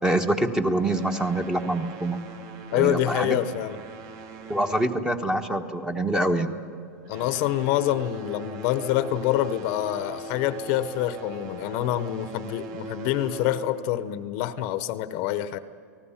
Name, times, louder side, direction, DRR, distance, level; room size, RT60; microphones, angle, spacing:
voice 1, 0.0-2.2 2.7-3.4 4.5-6.6, right 1 dB, 5° right, 6 dB, 1.2 m, -25 dB
sound 1, 0.8-5.7 6.0-6.3 6.9-13.9, right 2 dB, 40° right, 2.1 m, -41 dB
voice 2, 2.7-3.8 7.1-15.6, left 12 dB, 50° left, 12 dB, 1.0 m, -26 dB
29.0 x 19.0 x 5.8 m, 2.3 s
supercardioid pair, 135°, 9 cm